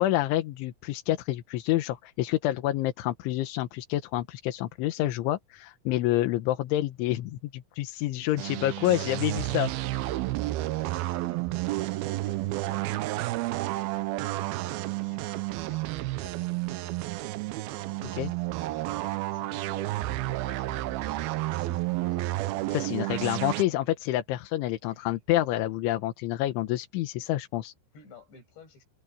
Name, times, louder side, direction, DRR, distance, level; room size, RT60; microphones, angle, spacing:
voice 1, 0.0-9.7 18.1-18.3 22.7-27.7, left 14 dB, 85° left, 3.7 m, -28 dB
voice 2, 8.1-11.4 11.7-13.6 13.9-19.9 20.2-22.8 23.2-24.0 24.8-25.2 27.9-28.9, left 4 dB, 70° left, 8.7 m, -53 dB
sound 1, 8.4-23.6, right 17 dB, 90° right, 2.1 m, -31 dB
omnidirectional pair, 5.3 m